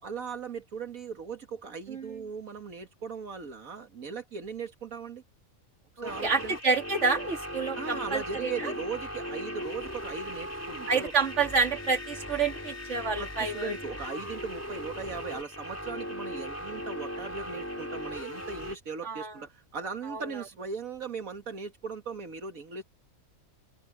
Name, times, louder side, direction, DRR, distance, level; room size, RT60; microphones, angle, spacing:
voice 1, 0.0-5.2 6.0-6.6 7.7-11.1 13.2-22.8, right 5 dB, 80° right, 2.2 m, -38 dB
voice 2, 1.9-2.2 6.0-8.7 10.9-13.7 19.0-19.4 20.1-20.2, right 4 dB, 55° right, 2.8 m, -29 dB
sound 1, 6.1-18.8, equal, 10° left, 4.2 m, -38 dB
open air
omnidirectional pair, 1.4 m